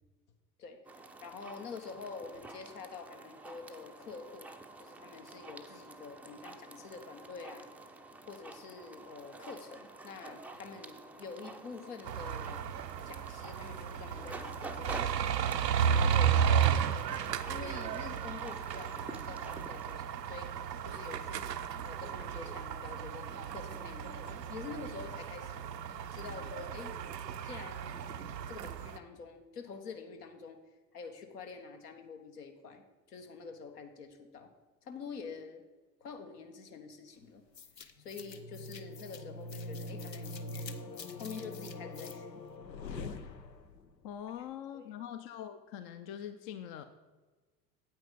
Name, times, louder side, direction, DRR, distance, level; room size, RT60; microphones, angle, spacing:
sound 1, 0.8-19.9, right 2 dB, 5° right, 0.4 m, -49 dB
voice 1, 1.2-4.5 4.8-7.7 8.2-12.7 13.0-15.4 15.8-20.5 20.8-21.6 21.8-25.6 26.1-26.9 27.4-27.9 28.5-30.6 30.9-32.8 33.1-34.5 34.8-35.6 36.0-37.4 38.0-40.9 41.2-42.4 44.7-44.9, left 5 dB, 70° left, 5 dB, 1.3 m, -47 dB
sound 2, 12.0-29.0, right 8 dB, 80° right, 0.6 m, -34 dB
sound 3, 37.6-43.9, left 2 dB, 85° left, 0.7 m, -43 dB
voice 2, 44.0-46.8, left 9 dB, 45° left, 9 dB, 0.7 m, -43 dB
9.1 x 8.8 x 3.9 m, 1.2 s
figure-of-eight pair, 70°, 49 cm